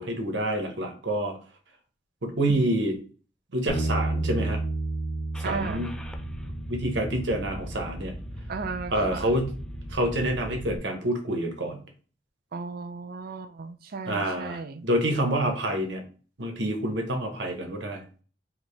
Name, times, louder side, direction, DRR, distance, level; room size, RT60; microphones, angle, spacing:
voice 1, 0.0-1.3 2.2-3.0 3.5-4.6 5.4-5.9 6.7-8.1 8.9-9.5 9.9-11.8 14.1-16.0 16.4-18.0, right 1 dB, 80° right, 1.2 m, -27 dB
Bass guitar, 3.7-9.9, right 2 dB, 75° left, 1.2 m, -33 dB
Car / Engine starting, 5.3-10.8, equal, 5° left, 0.5 m, -39 dB
voice 2, 5.4-5.9 8.5-9.4 12.5-14.9, right 4 dB, 55° right, 0.5 m, -35 dB
5.0 x 2.9 x 3.3 m
head